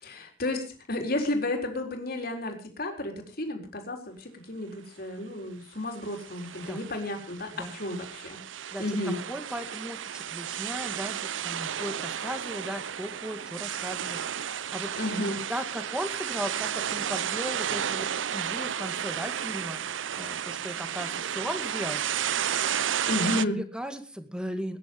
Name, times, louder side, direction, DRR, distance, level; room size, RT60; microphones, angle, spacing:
voice 1, 0.0-8.4 8.8-9.2 15.0-15.4 23.1-23.6, left 1 dB, 55° left, 3 dB, 4.1 m, -32 dB
sound 1, 6.0-23.4, right 9 dB, 90° right, 0.6 m, -33 dB
voice 2, 8.7-14.9 15.5-19.8 20.2-22.7 23.5-24.8, equal, 5° right, 7 dB, 2.0 m, -37 dB
21.0 x 10.5 x 5.3 m, 0.39 s
head